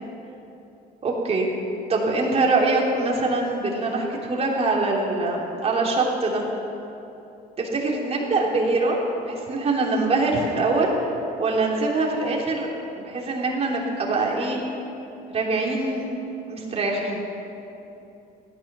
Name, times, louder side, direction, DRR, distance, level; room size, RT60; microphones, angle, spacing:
voice 1, 1.0-1.5 1.9-6.4 7.6-10.9 11.4-12.7 13.0-14.6 15.3-16.1 16.5-17.2, right 3 dB, 35° right, -2 dB, 3.1 m, -23 dB
16.0 x 12.5 x 6.2 m, 2.9 s
cardioid pair, 110°, 17 cm